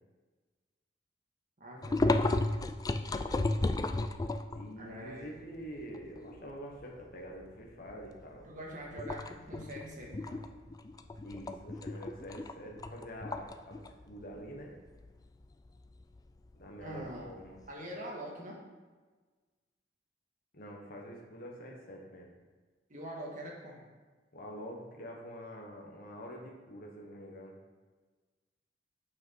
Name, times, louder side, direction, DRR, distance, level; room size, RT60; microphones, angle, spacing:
voice 1, 1.6-2.4 4.8-5.3 8.5-10.4 16.8-17.3 17.7-18.6 22.9-23.8, right 1 dB, 45° right, -2 dB, 1.8 m, -44 dB
sound 1, 1.8-4.7 5.2-5.3 5.7-6.8 7.3-7.5 7.9-8.5 8.9-17.7, left 2 dB, 20° left, 0.3 m, -34 dB
voice 2, 4.5-8.5 11.2-14.8 16.6-17.6 20.5-22.3 24.3-27.6, equal, 55° left, -1 dB, 1.3 m, -46 dB
7.6 x 5.8 x 4.6 m, 1.3 s
head